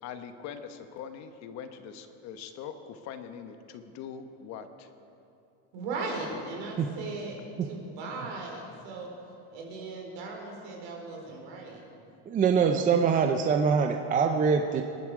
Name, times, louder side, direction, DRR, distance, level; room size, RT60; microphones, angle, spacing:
voice 1, 0.0-4.9 6.3-6.4, left 7 dB, 45° left, 8 dB, 1.1 m, -42 dB
voice 2, 5.7-7.4 7.7-9.1 9.5-11.8, right 3 dB, 60° right, 0 dB, 4.4 m, -37 dB
voice 3, 12.3-14.8, right 6 dB, 20° right, 5 dB, 0.6 m, -24 dB
26.0 x 11.5 x 4.9 m, 2.7 s
cardioid pair, 155°, 38 cm